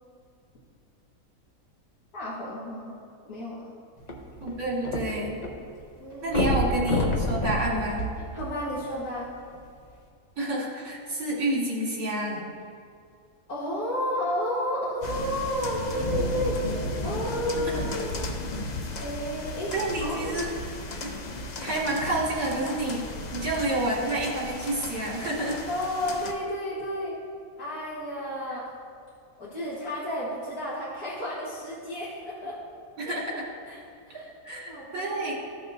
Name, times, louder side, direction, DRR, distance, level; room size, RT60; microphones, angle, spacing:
voice 1, 2.1-3.0 3.3-3.7 6.0-6.5 8.3-9.3 13.5-16.6 17.0-18.2 19.0-19.7 20.0-20.5 25.7-27.1 27.6-28.7 29.4-32.6 33.0-33.4 33.7-33.8 34.1-34.3 34.7-35.3, equal, 80° left, -10 dB, 2.0 m, -32 dB
sound 1, 4.0-5.5 5.8-5.9 6.3-8.9 9.6-9.7, left 1 dB, 35° left, 0.8 m, -28 dB
voice 2, 4.4-5.4 6.2-8.1 10.4-12.5 17.7-17.8 19.7-20.5 20.9-21.1 21.6-23.0 23.3-25.6 33.0-33.4 34.1-35.3, right 1 dB, 65° right, -5 dB, 2.4 m, -29 dB
sound 2, 15.0-26.3, left 2 dB, 60° left, 0.4 m, -35 dB
14.5 x 5.8 x 2.7 m, 2.3 s
omnidirectional pair, 1.6 m